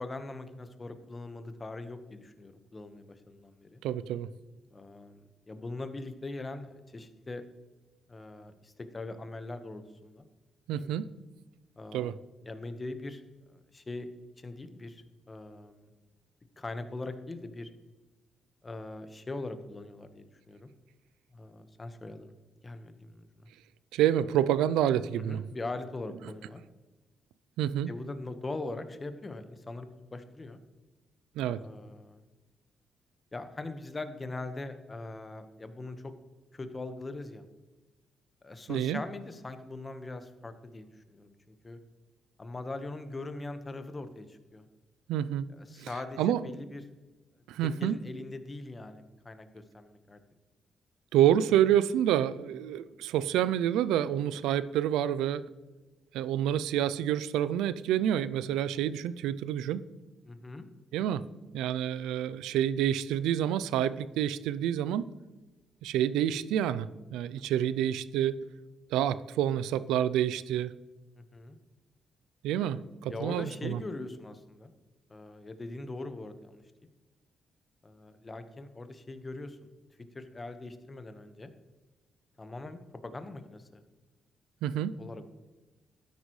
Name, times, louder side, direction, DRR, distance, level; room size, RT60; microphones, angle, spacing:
voice 1, 0.0-3.8 4.7-7.4 8.1-10.3 10.7-11.0 11.8-13.2 13.5-14.1 14.4-15.9 16.6-17.7 18.6-20.7 21.3-22.3 22.6-23.3 25.2-26.6 27.9-30.6 31.6-32.2 33.3-36.1 36.5-37.4 38.4-41.8 42.4-44.6 45.5-46.8 47.6-50.2 60.2-60.7 67.5-67.7 71.2-71.6 73.1-74.7 75.1-76.6 77.8-79.6 80.1-81.5 82.4-83.8 85.0-85.3, left 2 dB, 30° left, 9 dB, 1.3 m, -41 dB
voice 2, 3.8-4.3 10.7-11.1 11.9-12.1 23.9-25.4 27.6-27.9 31.4-31.6 38.7-39.0 45.1-45.4 45.8-45.9 46.2-46.4 47.5-48.0 51.1-55.4 56.1-59.8 60.9-61.2 61.5-65.1 65.8-68.4 68.9-70.7 72.4-73.8 84.6-84.9, right 11 dB, 85° right, 16 dB, 0.4 m, -28 dB
13.0 x 10.0 x 3.2 m, 1.2 s
supercardioid pair, 60°, 0 cm